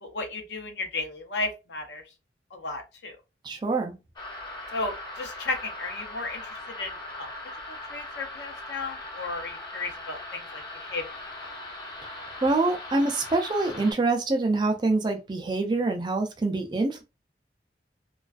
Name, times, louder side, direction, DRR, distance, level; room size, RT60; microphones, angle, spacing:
voice 1, 0.0-2.0 2.5-3.2 4.7-7.3 7.7-10.6 10.9-11.5, left 3 dB, 75° left, 0.6 m, -34 dB
voice 2, 3.4-3.9 12.4-17.0, right 3 dB, 25° right, 0.3 m, -25 dB
sound 1, 4.2-13.9, left 2 dB, 25° left, 0.5 m, -40 dB
2.3 x 2.3 x 2.3 m
head